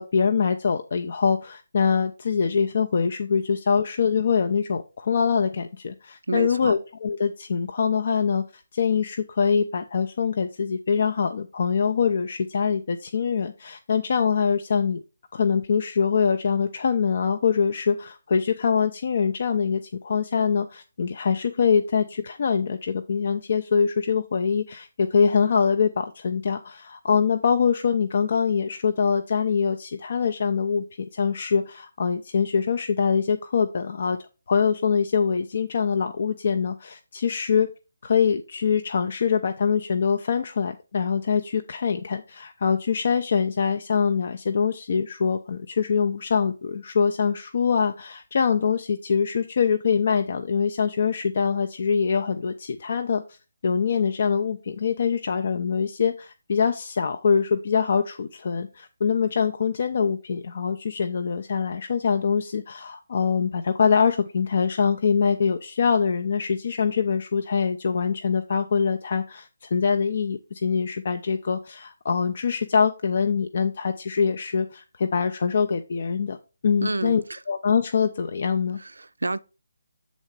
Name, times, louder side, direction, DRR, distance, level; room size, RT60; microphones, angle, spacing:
voice 1, 0.0-15.0 15.3-30.8 31.1-37.7 38.0-53.4 53.6-76.4 76.6-77.2 77.5-78.8, left 6 dB, 45° left, 0.5 m, -24 dB
voice 2, 6.3-6.7 76.8-77.4 78.8-79.4, right 2 dB, 70° right, 0.4 m, -29 dB
7.2 x 4.0 x 4.6 m
figure-of-eight pair, 145°, 0 cm